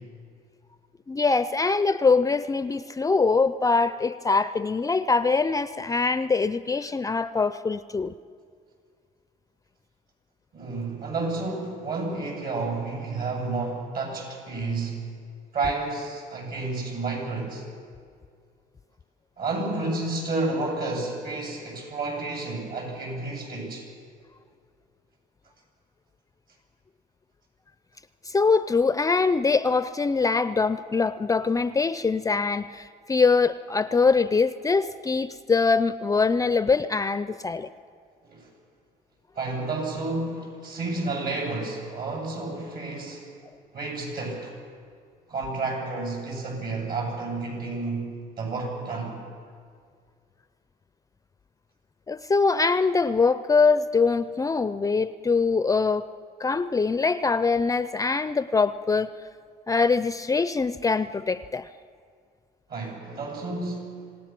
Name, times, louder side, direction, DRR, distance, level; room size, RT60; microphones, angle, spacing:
voice 1, 1.1-8.1 28.3-37.7 52.1-56.1 56.4-59.1 59.7-61.7, left 4 dB, 20° left, 14 dB, 0.4 m, -23 dB
voice 2, 10.5-15.1 15.5-17.6 19.4-23.9 38.3-38.5 39.3-43.3 43.7-44.5 45.3-49.2 62.7-64.0, right 3 dB, 65° right, 0 dB, 8.0 m, -31 dB
26.5 x 17.5 x 6.0 m, 2.2 s
cardioid pair, 110°, 17 cm